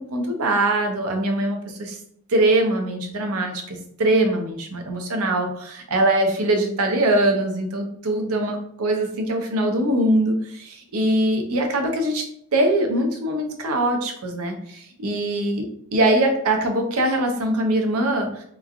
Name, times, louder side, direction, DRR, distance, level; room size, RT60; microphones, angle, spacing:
voice 1, 0.0-2.0 2.3-12.2 12.5-15.7 15.9-18.4, right 1 dB, 80° right, 4 dB, 0.5 m, -22 dB
3.1 x 2.2 x 2.4 m, 0.68 s
head